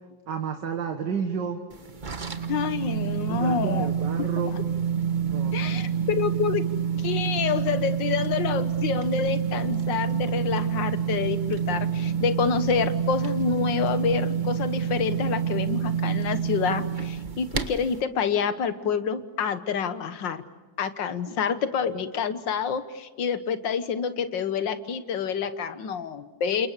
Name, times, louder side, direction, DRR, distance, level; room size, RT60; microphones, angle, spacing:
voice 1, 0.3-1.6 3.3-4.6 5.3-5.9, right 6 dB, 70° right, 5 dB, 2.1 m, -31 dB
sound 1, 1.7-18.0, right 7 dB, 30° right, 1.3 m, -28 dB
voice 2, 2.5-3.9 4.2-4.3 4.5-4.6 5.5-6.6 7.0-20.4 20.8-26.7, left 6 dB, 75° left, 11 dB, 2.0 m, -27 dB
30.0 x 28.0 x 6.8 m, 1.2 s
omnidirectional pair, 2.0 m